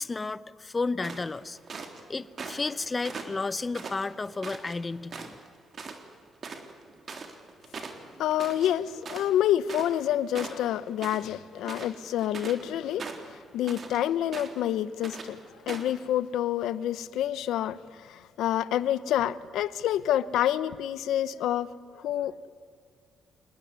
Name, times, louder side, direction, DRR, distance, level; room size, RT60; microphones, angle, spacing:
voice 1, 0.0-1.6 2.1-5.4, left 3 dB, 25° left, 0.9 m, -32 dB
sound 1, 1.0-2.0 2.4-2.7 3.0-4.7 5.1-5.5 5.7-6.0 6.2-10.1 10.3-11.3 11.6-12.6 13.0-14.0 14.3-14.7 15.0-15.3 15.7-15.9, right 5 dB, 45° right, 3.6 m, -40 dB
voice 2, 8.2-15.4 15.7-22.3, left 11 dB, 85° left, 0.9 m, -28 dB
27.0 x 20.0 x 9.6 m
cardioid pair, 90°, 0 cm